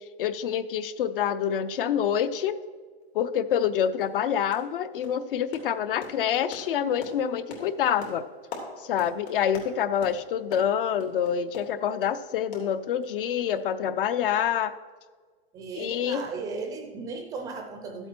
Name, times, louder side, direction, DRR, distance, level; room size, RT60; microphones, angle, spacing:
voice 1, 0.2-2.6 3.1-8.2 8.8-14.7 15.7-16.2, left 9 dB, 60° left, 13 dB, 0.7 m, -27 dB
sound 1, 3.0-3.1 3.5-3.7 4.0-4.2 4.5-4.8 5.0-12.2 12.5-13.3 13.6-13.7 14.0-14.1, left 3 dB, 80° left, 3.1 m, -44 dB
voice 2, 15.5-18.1, right 4 dB, 10° right, 4 dB, 0.5 m, -36 dB
13.0 x 7.8 x 4.4 m, 1.5 s
supercardioid pair, 160°, 31 cm